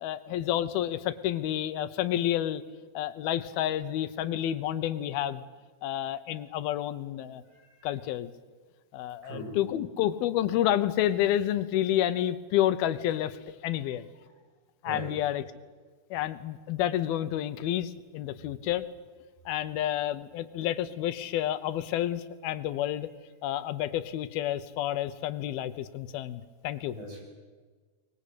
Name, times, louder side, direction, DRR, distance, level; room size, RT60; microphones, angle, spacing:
voice 1, 0.0-2.6 2.9-5.4 5.8-7.4 7.8-8.3 8.9-14.1 14.8-15.4 16.1-18.9 19.5-23.1 23.4-27.0, left 12 dB, 75° left, 12 dB, 2.6 m, -29 dB
voice 2, 7.5-7.9 9.2-9.6 14.9-15.1 26.9-27.2, right 1 dB, 55° right, 0 dB, 9.0 m, -40 dB
24.0 x 21.0 x 8.5 m, 1.4 s
omnidirectional pair, 4.7 m